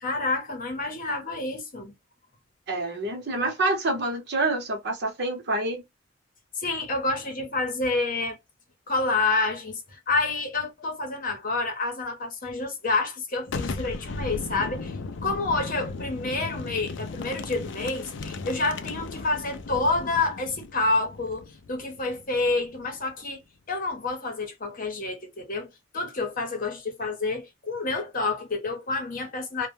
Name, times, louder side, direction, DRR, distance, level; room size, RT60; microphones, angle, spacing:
voice 1, 0.0-1.9 6.6-8.4 8.9-14.9 15.2-23.4 23.7-25.7 25.9-29.7, left 3 dB, 40° left, 0.8 m, -28 dB
voice 2, 2.7-5.8, right 2 dB, 50° right, 0.8 m, -27 dB
Boom, 13.5-23.0, left 3 dB, 60° left, 0.4 m, -36 dB
2.1 x 2.1 x 3.1 m
head